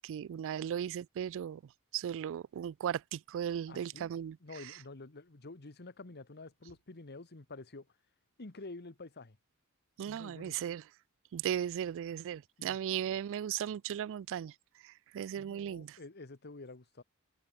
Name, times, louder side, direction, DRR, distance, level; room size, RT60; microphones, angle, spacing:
voice 1, 0.0-1.6 1.9-4.4 10.0-10.8 11.3-14.5 15.1-16.0, right 9 dB, 60° right, 0.3 m, -36 dB
voice 2, 3.7-4.1 4.4-7.9 8.4-9.4 10.1-10.6 12.6-12.8 15.3-17.0, left 3 dB, 50° left, 1.4 m, -49 dB
head